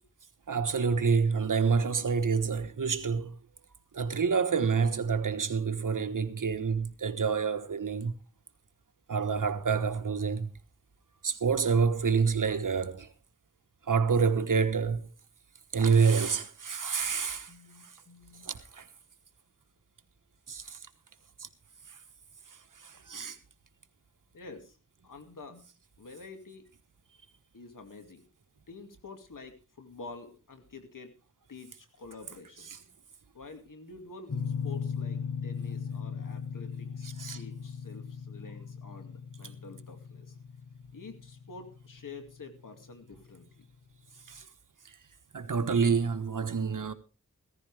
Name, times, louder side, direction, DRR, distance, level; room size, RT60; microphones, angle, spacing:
voice 1, 0.5-3.3 3.9-8.1 9.1-10.5 11.2-13.1 13.9-15.1 15.7-17.5 18.5-18.8 20.5-20.6 23.1-23.4 32.7-32.8 37.0-37.4 45.3-46.9, right 5 dB, 80° right, 1.3 m, -27 dB
voice 2, 17.5-18.5 23.2-23.3 24.3-24.8 25.0-25.7 26.0-26.7 27.5-28.2 28.7-31.1 31.5-32.7 33.3-40.3 40.9-43.7, left 4 dB, 90° left, 2.3 m, -48 dB
sound 1, 34.3-43.0, left 6 dB, 55° left, 1.5 m, -38 dB
15.5 x 14.5 x 3.4 m
wide cardioid pair, 50°, 31 cm